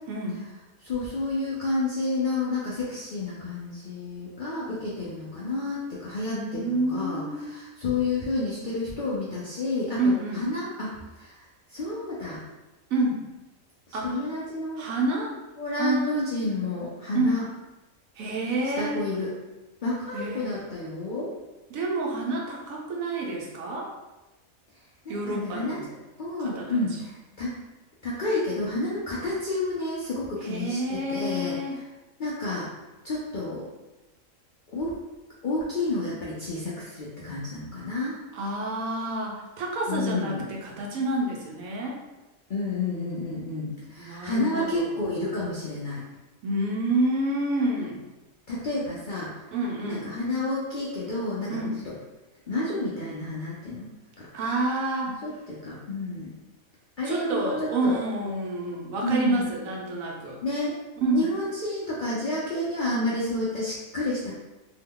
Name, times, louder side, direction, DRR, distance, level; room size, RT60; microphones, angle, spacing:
voice 1, 0.1-0.4 6.3-7.5 10.0-10.4 12.9-13.2 13.9-14.2 14.8-15.4 15.7-16.1 17.1-17.4 18.2-19.0 20.1-20.6 21.7-23.9 25.1-25.9 26.4-26.8 30.4-31.8 38.3-42.0 43.9-44.9 46.4-48.0 49.5-50.1 51.5-51.8 54.3-55.1 57.0-60.4 61.0-61.2, right 2 dB, 75° right, -1 dB, 1.1 m, -28 dB
voice 2, 0.8-11.4 11.7-12.4 14.0-14.9 15.6-17.4 18.8-19.3 19.8-21.3 25.1-25.9 26.2-27.1 27.4-27.5 28.0-31.6 32.2-32.7 33.0-33.6 34.7-34.9 35.4-38.2 39.9-40.5 42.5-46.0 48.5-49.3 49.9-51.6 51.8-51.9 52.5-53.9 54.2-54.3 55.2-56.3 57.0-58.0 59.0-59.5 60.4-60.8 61.1-64.3, left 2 dB, 60° left, -7 dB, 0.5 m, -30 dB
2.7 x 2.2 x 3.6 m, 1.1 s
omnidirectional pair, 1.4 m